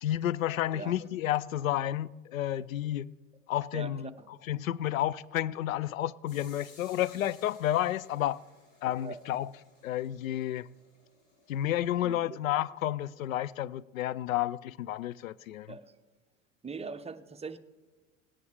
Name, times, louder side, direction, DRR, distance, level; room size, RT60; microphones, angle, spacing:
voice 1, 0.0-3.1 3.5-4.1 4.5-8.4 8.8-9.5 9.8-10.7 11.5-15.7, left 12 dB, 80° left, 0.5 m, -31 dB
voice 2, 3.7-4.3 9.0-9.2 11.9-12.4 15.6-15.9 16.6-17.6, right 5 dB, 15° right, 0.8 m, -41 dB
sound 1, 6.3-11.9, left 3 dB, 55° left, 4.3 m, -59 dB
18.5 x 9.5 x 4.9 m
figure-of-eight pair, 75°, 40 cm